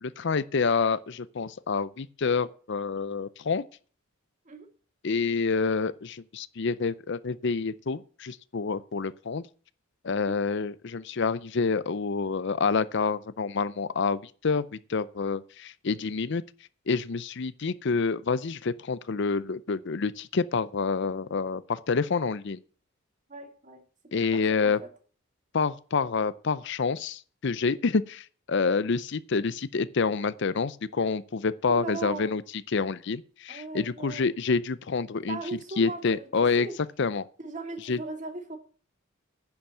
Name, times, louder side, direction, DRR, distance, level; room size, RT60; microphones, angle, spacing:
voice 1, 0.0-3.6 5.0-9.4 10.0-16.4 16.9-22.6 24.1-24.8 25.5-32.4 32.7-35.4 35.8-36.7 37.0-37.2 37.9-38.0, left 4 dB, 55° left, 0.5 m, -28 dB
voice 2, 23.3-23.8 24.1-24.9 31.7-32.3 33.5-34.3 35.3-36.3 36.6-36.7 37.4-38.6, right 2 dB, 35° right, 2.1 m, -38 dB
10.5 x 7.1 x 7.7 m
head